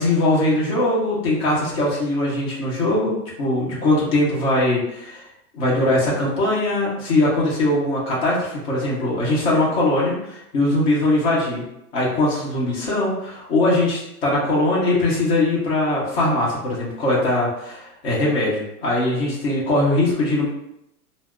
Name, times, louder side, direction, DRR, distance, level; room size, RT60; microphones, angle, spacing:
voice 1, 0.0-5.2 5.5-11.6 11.9-20.5, left 2 dB, 40° left, -6 dB, 1.1 m, -21 dB
2.7 x 2.1 x 3.5 m, 0.82 s
supercardioid pair, 175°, 46 cm